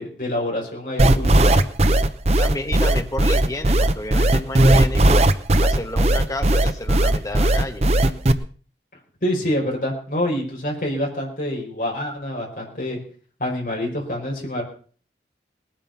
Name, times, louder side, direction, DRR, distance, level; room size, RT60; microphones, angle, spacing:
voice 1, 0.0-1.6 9.2-13.0 13.4-14.6, left 1 dB, 50° left, -2 dB, 5.2 m, -26 dB
sound 1, 1.0-8.3, right 1 dB, 35° right, 0.8 m, -16 dB
voice 2, 2.4-5.2 5.6-7.9, left 1 dB, 20° left, 6 dB, 1.4 m, -31 dB
19.5 x 9.0 x 5.9 m, 0.43 s
head